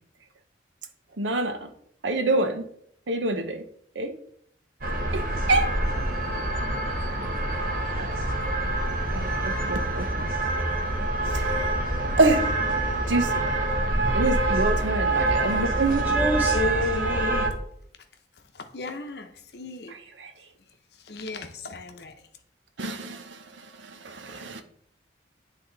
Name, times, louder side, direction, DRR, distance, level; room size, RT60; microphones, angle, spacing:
voice 1, 1.2-1.7 2.0-2.6 3.1-3.6 4.0-4.1 5.1-5.2 5.5-5.7 7.9-8.1 9.1-10.3 11.3-11.5 12.2-12.4 13.1-13.4 14.1-16.1 19.9-20.3 22.8-23.4 23.8-24.6, right 2 dB, 85° right, 0.8 m, -26 dB
sound 1, 4.8-17.5, right 2 dB, 50° right, 1.0 m, -26 dB
voice 2, 16.0-17.5, left 1 dB, 10° right, 1.7 m, -27 dB
voice 3, 18.7-19.3 19.5-19.9 21.1-22.1, left 3 dB, 60° left, 0.8 m, -38 dB
10.0 x 3.5 x 4.0 m
head